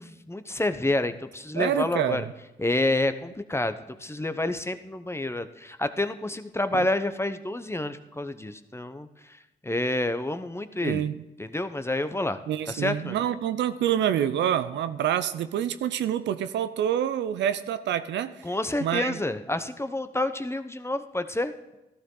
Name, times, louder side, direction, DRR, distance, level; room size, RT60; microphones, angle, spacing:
voice 1, 0.0-2.3 2.6-11.0 11.4-12.4 12.7-13.2 18.4-21.5, left 2 dB, 15° left, 0.9 m, -29 dB
voice 2, 1.6-2.2 6.7-6.9 10.8-11.2 12.5-18.4 18.8-19.2, right 10 dB, 85° right, 0.5 m, -27 dB
14.0 x 12.5 x 3.9 m
supercardioid pair, 50°, 18 cm